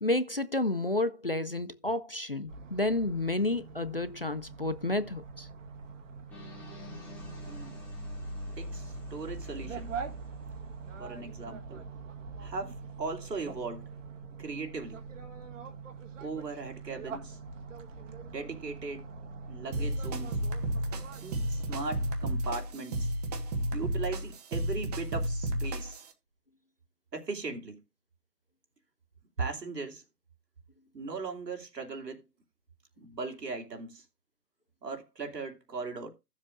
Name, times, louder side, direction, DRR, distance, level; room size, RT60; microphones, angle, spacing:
voice 1, 0.0-5.5, left 2 dB, 40° left, 0.4 m, -30 dB
sound 1, 2.5-22.1, right 4 dB, 50° right, 1.8 m, -43 dB
sound 2, 6.3-11.2, left 4 dB, 5° left, 1.3 m, -51 dB
voice 2, 7.4-7.8 8.6-9.9 11.0-11.8 12.4-13.8 14.4-15.0 16.2-17.4 18.3-19.0 19.5-20.4 21.2-23.1 23.7-26.0 27.1-27.8 29.4-30.0 30.9-32.3 33.0-34.0 34.8-36.1, right 4 dB, 80° right, 3.0 m, -38 dB
sound 3, 19.7-26.1, right 1 dB, 25° right, 1.4 m, -32 dB
15.5 x 7.3 x 2.5 m
figure-of-eight pair, 150°, 48 cm